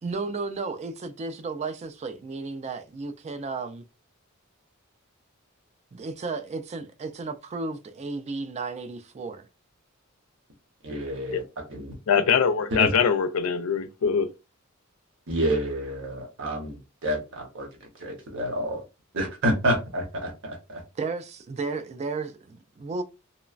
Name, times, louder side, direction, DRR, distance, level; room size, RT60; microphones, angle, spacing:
voice 1, 0.0-3.8 5.9-9.5 21.0-23.0, right 3 dB, 30° right, 0.3 m, -33 dB
voice 2, 10.8-11.9 12.7-12.9 15.3-17.7 18.0-18.8 19.1-20.8, right 1 dB, 65° right, 0.9 m, -28 dB
voice 3, 12.1-14.3, left 6 dB, 85° left, 0.4 m, -22 dB
3.0 x 2.1 x 2.4 m
head